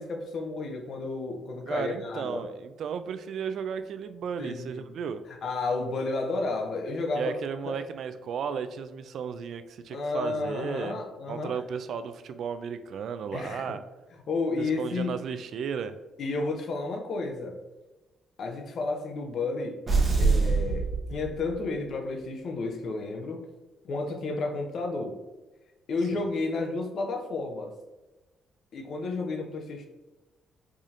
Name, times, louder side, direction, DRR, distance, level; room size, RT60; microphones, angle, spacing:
voice 1, 0.0-2.5 4.4-4.9 5.4-7.4 7.6-7.8 9.9-11.5 13.3-13.8 14.3-15.2 16.2-17.6 18.4-19.8 20.2-23.5 23.8-25.2 25.9-27.7 28.7-29.9, left 3 dB, 60° left, 4 dB, 0.7 m, -32 dB
voice 2, 1.7-5.2 7.1-11.0 11.3-13.8 14.6-15.9 26.1-26.2, right 7 dB, 65° right, 11 dB, 0.3 m, -34 dB
sound 1, 19.9-21.7, right 4 dB, 35° right, 0.9 m, -25 dB
4.8 x 2.7 x 2.5 m, 1.1 s
cardioid pair, 90°, 0 cm